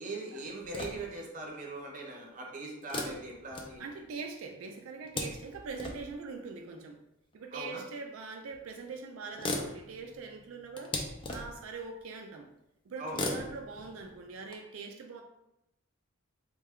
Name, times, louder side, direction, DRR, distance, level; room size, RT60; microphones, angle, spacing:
voice 1, 0.0-3.9 7.5-7.8 13.0-13.3, right 2 dB, 40° right, 0 dB, 0.7 m, -40 dB
sound 1, 0.6-1.2 2.8-4.2 4.8-6.2 7.3-7.4 8.5-8.6 8.9-9.0 9.2-11.7 13.0-14.5, left 2 dB, 25° left, 0.4 m, -39 dB
voice 2, 3.8-7.0 7.3-11.0 11.3-12.5 12.8-15.2, right 4 dB, 90° right, 3 dB, 0.4 m, -42 dB
3.2 x 2.2 x 3.5 m, 0.87 s
head